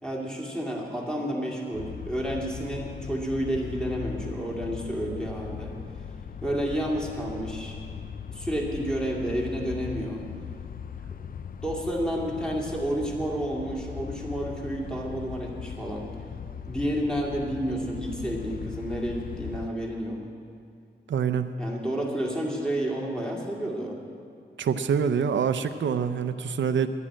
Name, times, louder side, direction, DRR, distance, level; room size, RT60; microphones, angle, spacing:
voice 1, 0.0-5.7 6.4-7.7 8.3-10.2 11.6-16.1 16.7-20.2 21.6-24.0, right 1 dB, 5° left, -2 dB, 2.3 m, -30 dB
sound 1, 1.7-19.7, left 7 dB, 50° left, 0.5 m, -39 dB
voice 2, 21.1-21.5 24.6-26.9, right 7 dB, 85° right, 10 dB, 0.6 m, -25 dB
11.0 x 10.0 x 8.7 m, 2.4 s
wide cardioid pair, 110°, 19 cm